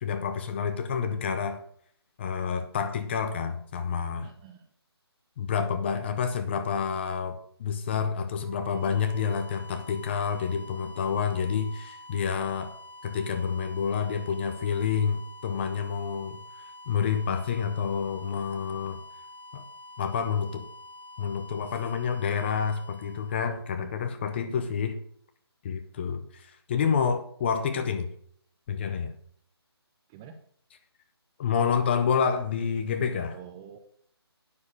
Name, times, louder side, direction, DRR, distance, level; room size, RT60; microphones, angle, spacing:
voice 1, 0.0-1.6 2.2-4.3 5.4-12.7 13.0-16.4 16.9-19.0 19.5-19.6 20.0-20.6 21.2-25.0 25.6-28.1 28.7-29.1 31.4-33.3, left 6 dB, 25° left, 8 dB, 0.7 m, -28 dB
voice 2, 4.2-4.7 23.8-24.2 30.1-30.4 33.3-33.8, right 8 dB, 10° right, 4 dB, 0.3 m, -48 dB
sound 1, 8.3-24.1, left 1 dB, 40° right, 3.8 m, -47 dB
9.6 x 6.7 x 6.3 m, 0.63 s
figure-of-eight pair, 155°, 14 cm